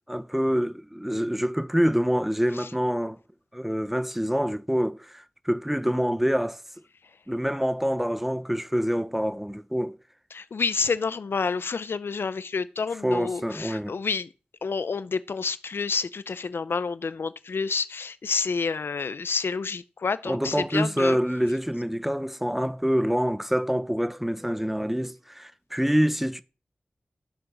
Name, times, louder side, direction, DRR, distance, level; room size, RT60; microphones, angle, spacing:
voice 1, 0.1-3.2 3.5-6.6 7.3-10.0 13.0-13.9 20.3-26.4, equal, 5° right, 0.8 m, -26 dB
voice 2, 10.3-14.3 14.6-21.2, left 5 dB, 85° left, 0.6 m, -29 dB
13.5 x 6.3 x 6.1 m
wide cardioid pair, 60°, 4 cm